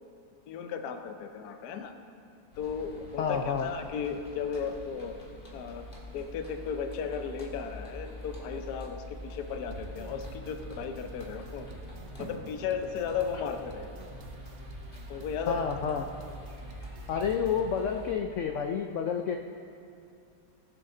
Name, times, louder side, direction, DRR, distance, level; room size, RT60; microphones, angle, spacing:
voice 1, 0.5-1.9 2.6-5.1 5.5-5.9 6.1-11.7 12.2-13.9 15.1-15.7, left 6 dB, 70° left, 6 dB, 1.2 m, -35 dB
sound 1, 2.5-18.1, left 1 dB, 30° left, 1.7 m, -45 dB
voice 2, 3.2-3.7 15.5-16.1 17.1-19.4, left 7 dB, 85° left, 4 dB, 0.6 m, -29 dB
sound 2, 9.7-17.7, right 5 dB, 60° right, 0.7 m, -48 dB
19.0 x 6.5 x 3.8 m, 2.6 s
omnidirectional pair, 1.9 m